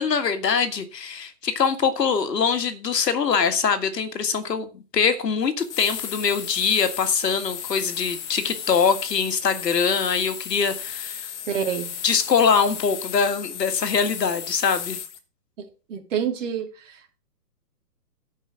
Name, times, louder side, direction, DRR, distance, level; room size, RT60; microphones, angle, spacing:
voice 1, 0.0-11.2 12.0-15.0, left 6 dB, 80° left, 1.9 m, -23 dB
sound 1, 5.6-15.2, left 9 dB, 45° left, 1.6 m, -35 dB
voice 2, 11.5-11.9 15.6-17.2, right 8 dB, 50° right, 2.7 m, -29 dB
10.5 x 5.4 x 6.3 m
hypercardioid pair, 150°, 48 cm